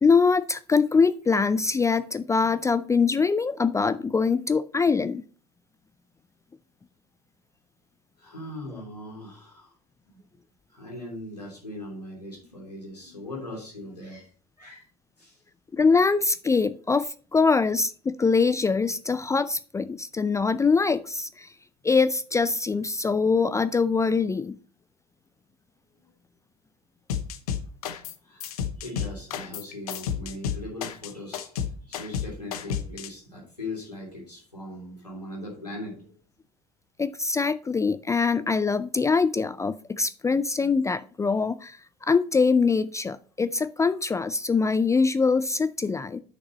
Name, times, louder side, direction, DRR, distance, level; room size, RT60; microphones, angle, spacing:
voice 1, 0.0-5.2 15.7-21.5 21.8-24.6 37.0-46.2, left 4 dB, 15° left, 14 dB, 0.4 m, -23 dB
voice 2, 8.2-9.7 10.1-10.2 10.7-14.3 14.6-14.9 15.2-15.4 28.2-31.5 31.8-36.2, left 1 dB, 90° left, -1 dB, 3.1 m, -40 dB
sound 1, 27.1-28.2 28.4-33.1, left 8 dB, 70° left, 0.9 m, -31 dB
8.2 x 6.6 x 4.0 m, 0.40 s
figure-of-eight pair, 65°, 20 cm